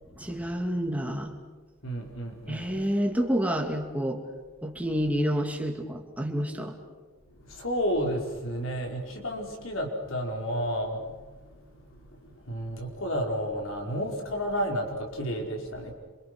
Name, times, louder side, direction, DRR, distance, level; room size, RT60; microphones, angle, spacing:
voice 1, 0.2-1.4 2.5-4.2 4.6-6.8, equal, 5° right, 2 dB, 2.5 m, -29 dB
voice 2, 1.8-2.8 7.3-11.2 11.4-15.9, equal, 75° left, 2 dB, 4.7 m, -32 dB
27.5 x 26.5 x 6.3 m, 1.4 s
head